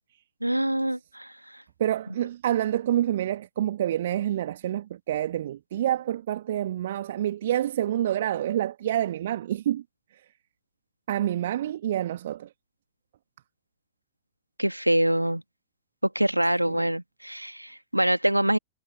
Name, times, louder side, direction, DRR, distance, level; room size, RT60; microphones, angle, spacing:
voice 1, 0.4-1.6 14.6-15.4 16.2-18.6, right 1 dB, 90° right, 1.8 m, -25 dB
voice 2, 1.8-9.8 10.1-10.2 11.1-12.5 16.7-16.9, right 12 dB, 60° right, 1.9 m, -27 dB
figure-of-eight pair, 90°, 0 cm